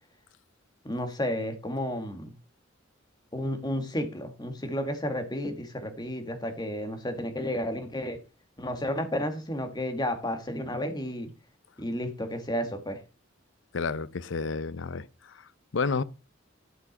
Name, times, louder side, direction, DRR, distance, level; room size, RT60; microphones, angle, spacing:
voice 1, 0.8-2.3 3.3-8.2 8.6-11.3 11.8-13.0, equal, 20° left, 1.7 m, -32 dB
voice 2, 13.7-16.0, left 4 dB, 70° left, 0.6 m, -31 dB
11.0 x 6.0 x 5.2 m
head